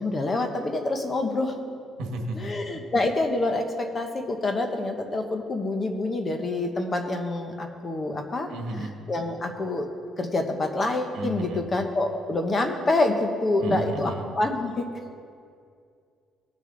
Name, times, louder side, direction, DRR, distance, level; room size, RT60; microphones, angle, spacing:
voice 1, 0.0-1.6 2.3-9.9 10.2-14.9, left 2 dB, 25° left, 5 dB, 0.9 m, -27 dB
voice 2, 2.0-2.5 8.5-8.9 11.1-11.7 13.6-14.3, right 2 dB, 80° right, 3 dB, 1.4 m, -32 dB
17.5 x 6.6 x 3.9 m, 2.3 s
cardioid pair, 170°, 0 cm